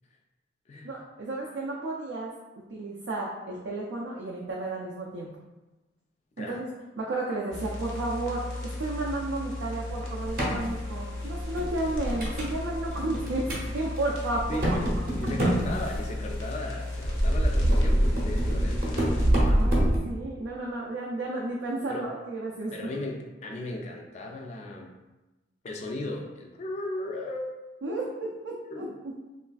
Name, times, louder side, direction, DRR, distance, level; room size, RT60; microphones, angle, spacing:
voice 1, 0.8-2.3 2.7-5.3 6.4-6.7 7.0-13.5 13.7-14.4 19.5-22.7 27.8-29.2, right 2 dB, 80° right, -3 dB, 0.4 m, -32 dB
sound 1, 7.5-19.3, left 2 dB, 85° left, 0.7 m, -36 dB
sound 2, 10.2-10.6 11.2-12.6 12.9-13.7 14.0-14.1 14.4-16.3 17.0-20.0, right 1 dB, 50° right, 0.7 m, -25 dB
voice 2, 14.5-19.2 21.9-22.1 22.7-25.0 25.6-27.5 27.9-28.1 28.7-29.0, left 2 dB, 35° left, 2 dB, 0.3 m, -36 dB
3.1 x 2.4 x 2.3 m, 1.1 s
head